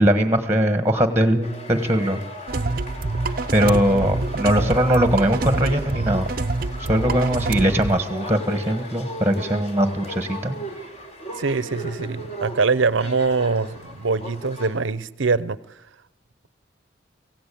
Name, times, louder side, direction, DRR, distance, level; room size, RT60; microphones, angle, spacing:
voice 1, 0.0-2.2 3.5-6.3 6.9-10.6, right 1 dB, 10° right, 9 dB, 1.5 m, -20 dB
sound 1, 1.4-14.8, equal, 35° left, 3.8 m, -37 dB
sound 2, 2.5-8.0, right 2 dB, 45° right, 0.7 m, -26 dB
voice 2, 3.6-4.3 11.4-15.6, right 4 dB, 80° right, 18 dB, 0.8 m, -23 dB
25.5 x 16.0 x 8.6 m, 0.96 s
head